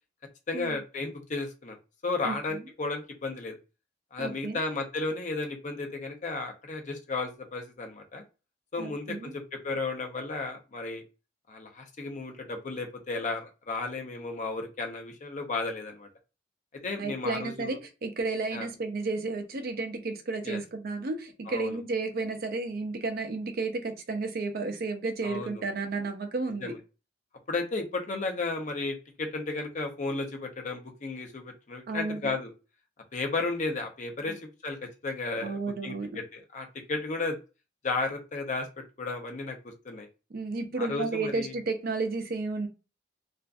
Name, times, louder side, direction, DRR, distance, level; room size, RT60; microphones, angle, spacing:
voice 1, 0.5-1.8 2.0-3.6 4.1-8.2 8.7-11.0 11.5-16.1 16.8-17.8 18.5-18.7 20.4-20.6 21.5-21.8 25.2-25.6 26.6-26.8 27.5-32.5 33.1-37.4 37.8-40.1 40.8-41.6, left 3 dB, 40° left, 4 dB, 0.6 m, -34 dB
voice 2, 4.2-4.6 8.8-9.3 17.0-26.7 31.9-32.3 34.3-34.4 35.4-36.2 40.3-42.7, right 3 dB, 55° right, 5 dB, 0.5 m, -32 dB
2.4 x 2.4 x 2.3 m, 0.30 s
head